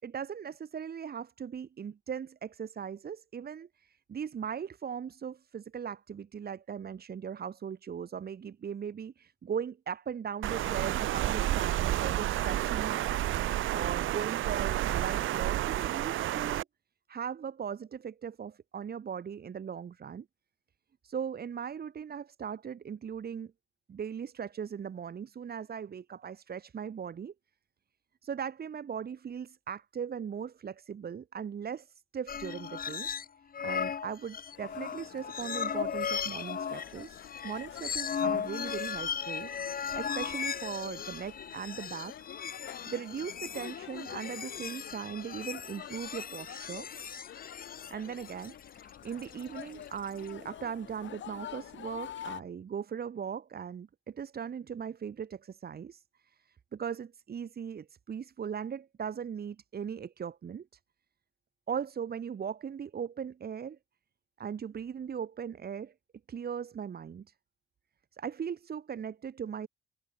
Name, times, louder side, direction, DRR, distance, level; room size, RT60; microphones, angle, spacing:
voice 1, 0.0-13.0 13.7-16.6 17.1-20.3 21.0-23.5 23.9-27.3 28.2-33.1 33.6-42.2 42.9-46.9 47.9-60.7 61.7-63.8 64.4-65.9 66.3-67.3 68.1-69.7, right 7 dB, 50° right, 6.6 m, -39 dB
Water, 10.4-16.6, right 14 dB, 80° right, 1.7 m, -30 dB
sound 1, 32.3-33.3 33.5-50.3, left 7 dB, 45° left, 3.5 m, -37 dB
sound 2, 34.5-52.4, left 10 dB, 70° left, 7.8 m, -47 dB
cardioid pair, 90°, 20 cm